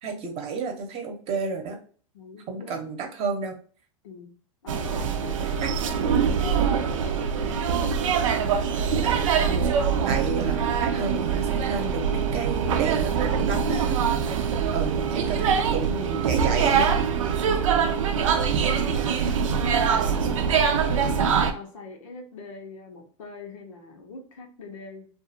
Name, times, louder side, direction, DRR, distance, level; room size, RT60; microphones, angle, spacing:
voice 1, 0.0-1.8 2.5-3.6 5.6-5.7 9.0-9.4 10.0-14.0 14.3-14.4 14.7-16.9, right 5 dB, 40° right, 3 dB, 0.8 m, -31 dB
voice 2, 2.1-2.8 4.0-4.3 4.6-7.9 17.8-21.2 21.5-25.1, left 4 dB, 85° left, 2 dB, 0.9 m, -42 dB
sound 1, 4.7-21.5, right 6 dB, 85° right, 0.5 m, -24 dB
2.5 x 2.4 x 2.7 m, 0.42 s
hypercardioid pair, 120°, 16 cm